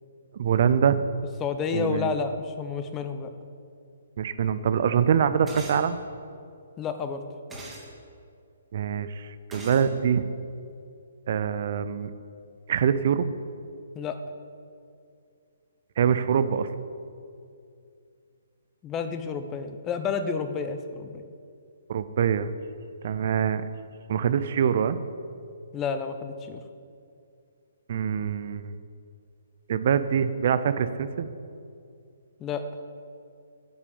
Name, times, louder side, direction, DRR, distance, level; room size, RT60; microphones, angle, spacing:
voice 1, 0.3-1.0 1.7-2.1 4.2-6.0 8.7-10.3 11.3-12.1 12.7-13.3 16.0-16.7 21.9-22.5 23.0-23.6 24.1-25.0 27.9-28.8 29.7-31.3, right 8 dB, 50° right, 12 dB, 0.5 m, -24 dB
voice 2, 1.4-3.3 6.8-7.2 13.9-14.2 18.8-21.2 25.7-26.6 32.4-32.6, left 6 dB, 20° left, 8 dB, 0.8 m, -30 dB
sound 1, 5.5-5.8 7.5-7.9 9.5-9.9, right 2 dB, 10° right, 2.3 m, -39 dB
9.5 x 7.0 x 8.8 m, 2.4 s
figure-of-eight pair, 130°, 0 cm